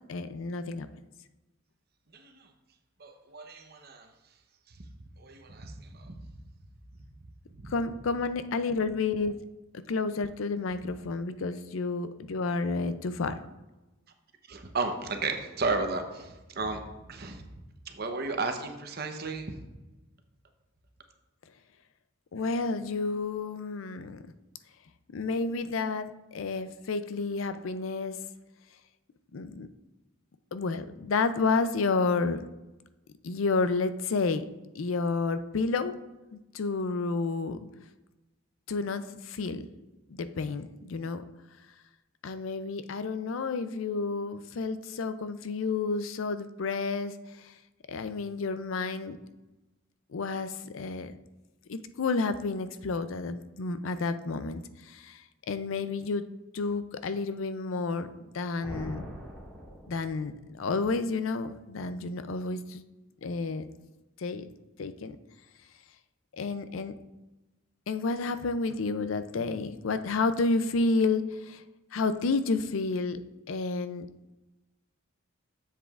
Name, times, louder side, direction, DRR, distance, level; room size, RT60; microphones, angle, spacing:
voice 1, 0.1-0.9 7.7-9.4 9.9-13.4 22.3-24.2 25.1-28.2 29.3-29.7 30.5-32.4 33.2-34.4 34.7-36.0 36.3-37.6 38.7-39.7 40.1-41.2 42.2-47.5 47.9-49.2 50.1-51.1 51.7-56.2 56.5-59.1 59.9-62.8 63.2-63.7 64.2-64.5 64.8-65.2 66.4-66.9 67.9-71.6 71.9-73.2 73.5-74.1, left 3 dB, 75° left, 11 dB, 0.5 m, -30 dB
voice 2, 2.1-2.5 3.0-4.1 5.2-6.2 7.6-7.7 14.5-16.8 17.1-17.4 17.9-19.5, right 3 dB, 50° right, 5 dB, 0.8 m, -34 dB
sound 1, 58.6-60.6, equal, ahead, 1.7 m, -43 dB
10.0 x 7.3 x 2.4 m, 1.1 s
head